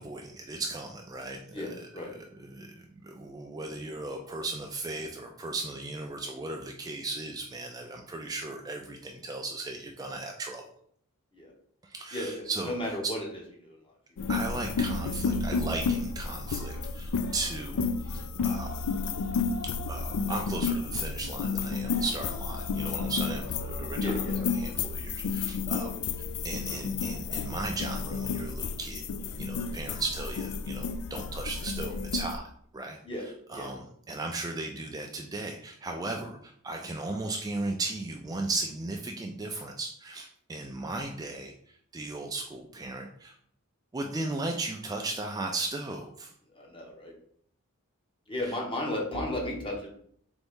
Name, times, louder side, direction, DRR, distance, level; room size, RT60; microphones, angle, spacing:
voice 1, 0.0-10.6 11.8-13.0 14.3-18.8 19.9-25.9 26.4-29.0 29.4-32.4 32.7-43.4 43.9-46.3 48.4-48.6, right 2 dB, 15° right, 2 dB, 0.3 m, -36 dB
voice 2, 1.5-2.1 11.3-11.5 12.1-13.3 13.6-13.8 24.0-24.6 25.9-26.0 33.0-33.2 33.5-33.7 46.5-47.1 48.3-49.9, left 1 dB, 25° left, -1 dB, 1.0 m, -34 dB
sound 1, 14.2-32.4, left 4 dB, 85° left, 0.4 m, -31 dB
4.0 x 3.5 x 3.6 m, 0.65 s
head